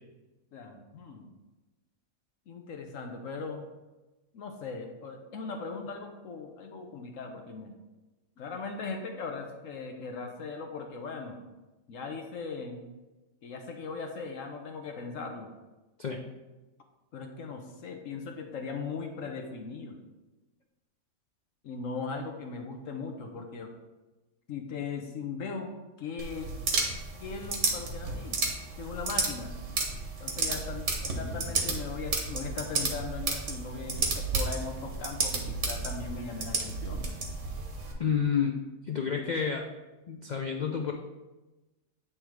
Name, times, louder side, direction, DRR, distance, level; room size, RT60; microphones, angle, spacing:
voice 1, 0.5-1.3 2.5-3.7 4.3-7.7 8.4-11.4 11.9-12.8 13.4-15.5 17.1-20.0 21.6-23.7 24.5-25.7 26.0-26.5 27.2-28.4 28.8-29.5 30.2-37.1, left 4 dB, 70° left, 4 dB, 1.1 m, -39 dB
sound 1, 26.2-37.9, right 3 dB, 60° right, 1.4 m, -32 dB
voice 2, 38.0-38.6 38.8-39.7 40.1-40.9, left 7 dB, 90° left, 3 dB, 0.4 m, -29 dB
8.7 x 3.4 x 4.6 m, 1.1 s
omnidirectional pair, 1.5 m